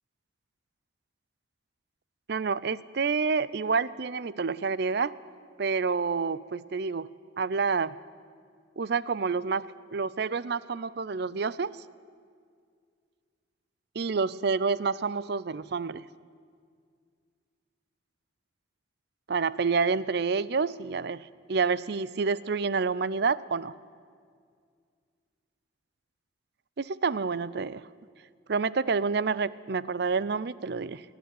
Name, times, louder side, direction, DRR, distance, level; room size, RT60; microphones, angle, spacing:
voice 1, 2.3-5.2 5.6-7.1 7.4-8.0 8.8-11.8 14.0-16.1 19.3-23.7 26.8-27.9 28.5-31.0, right 5 dB, 55° right, 19 dB, 0.5 m, -28 dB
27.5 x 11.0 x 9.2 m, 2.1 s
head